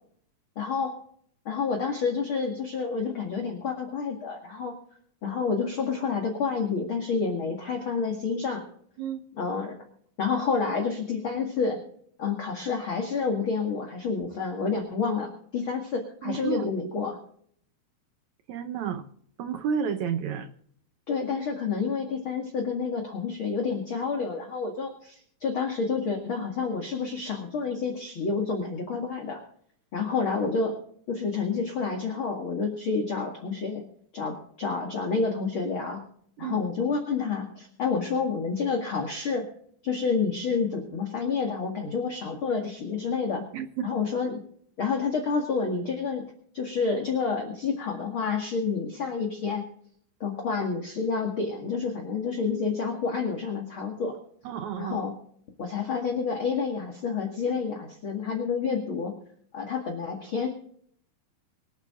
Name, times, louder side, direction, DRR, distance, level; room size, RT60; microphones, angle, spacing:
voice 1, 0.6-0.9 1.5-4.7 5.2-8.6 9.4-9.7 10.2-11.8 12.2-17.2 21.1-29.4 29.9-30.8 31.1-33.8 34.1-36.0 36.4-39.4 39.8-43.4 43.8-44.4 44.8-46.2 46.5-49.7 50.2-54.2 54.8-55.1 55.6-59.1 59.5-60.5, left 5 dB, 40° left, 1 dB, 2.4 m, -29 dB
voice 2, 16.2-16.7 18.5-19.1 19.4-20.5 36.4-36.6 43.5-43.9 54.5-55.0, right 7 dB, 70° right, 8 dB, 2.0 m, -31 dB
25.0 x 8.9 x 3.8 m, 0.62 s
omnidirectional pair, 4.0 m